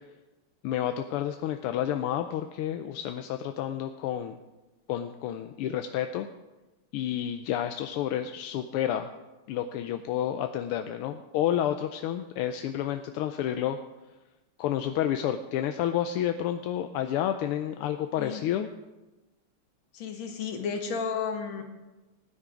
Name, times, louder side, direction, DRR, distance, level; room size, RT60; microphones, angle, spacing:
voice 1, 0.6-4.4 4.9-6.3 6.9-9.1 9.5-13.8 14.6-18.7, left 10 dB, 85° left, 7 dB, 1.6 m, -30 dB
voice 2, 19.9-21.6, left 6 dB, 65° left, 4 dB, 2.3 m, -32 dB
17.0 x 10.0 x 5.0 m, 1.1 s
omnidirectional pair, 2.4 m